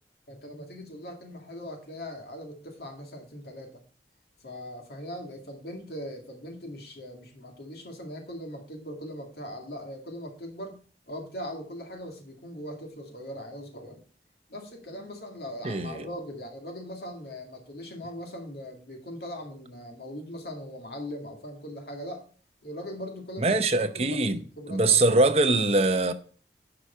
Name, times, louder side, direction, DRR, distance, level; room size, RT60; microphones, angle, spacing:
voice 1, 0.3-3.8 4.4-14.0 14.5-22.2 22.6-25.2, equal, 60° left, 2.2 m, -40 dB
voice 2, 15.6-16.1 23.4-24.4 24.7-26.1, right 2 dB, 35° right, 0.8 m, -23 dB
11.0 x 5.0 x 5.6 m
head